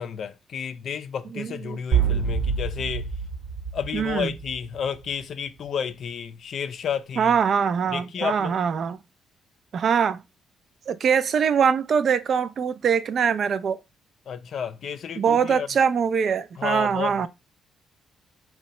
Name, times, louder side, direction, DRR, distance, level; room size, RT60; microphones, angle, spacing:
voice 1, 0.0-3.1 3.7-7.4 7.9-8.5 14.3-15.7 16.6-17.3, left 7 dB, 60° left, 0.4 m, -31 dB
voice 2, 1.4-1.8 2.0-2.2 3.9-4.3 7.2-9.0 9.7-10.2 10.9-13.8 15.2-17.3, right 7 dB, 55° right, 0.3 m, -23 dB
sound 1, 1.9-4.8, right 6 dB, 75° right, 1.0 m, -26 dB
2.8 x 2.2 x 4.1 m
cardioid pair, 90°, 0 cm